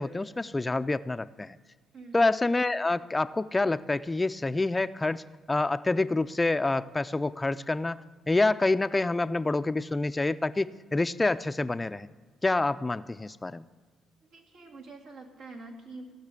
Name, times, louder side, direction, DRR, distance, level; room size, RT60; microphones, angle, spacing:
voice 1, 0.0-1.6 2.1-12.1 12.4-13.6, left 2 dB, 20° left, 14 dB, 0.3 m, -27 dB
voice 2, 14.3-16.1, right 3 dB, 85° right, -1 dB, 2.3 m, -45 dB
17.0 x 6.0 x 8.3 m, 1.5 s
cardioid pair, 90°, 0 cm